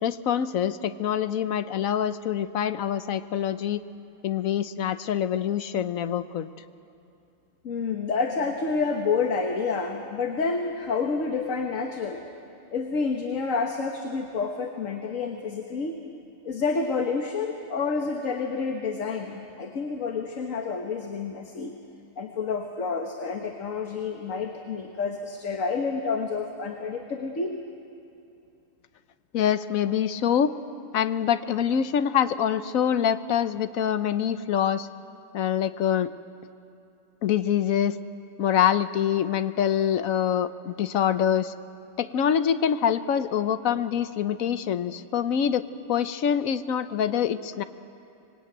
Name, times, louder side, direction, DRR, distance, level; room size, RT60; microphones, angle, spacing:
voice 1, 0.0-3.8 4.2-6.5 29.3-30.5 30.9-34.9 35.3-36.1 37.2-38.0 38.4-41.5 42.0-47.6, left 9 dB, 90° left, 12 dB, 1.2 m, -25 dB
voice 2, 7.6-12.2 12.7-15.9 16.4-21.7 22.2-27.6, left 4 dB, 75° left, 3 dB, 1.7 m, -29 dB
25.0 x 20.5 x 9.1 m, 2.6 s
omnidirectional pair, 1.4 m